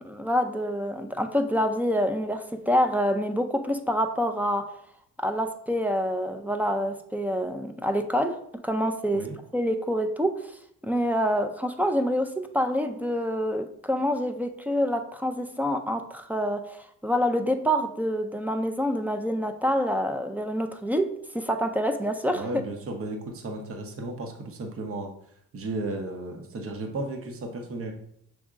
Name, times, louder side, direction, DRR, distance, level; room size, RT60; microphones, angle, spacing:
voice 1, 0.0-4.7 5.2-10.5 10.8-22.5, equal, 5° right, 6 dB, 0.4 m, -27 dB
voice 2, 22.3-25.1 25.5-27.9, right 2 dB, 50° right, 3 dB, 0.9 m, -34 dB
6.2 x 3.5 x 2.5 m, 0.71 s
cardioid pair, 90°, 30 cm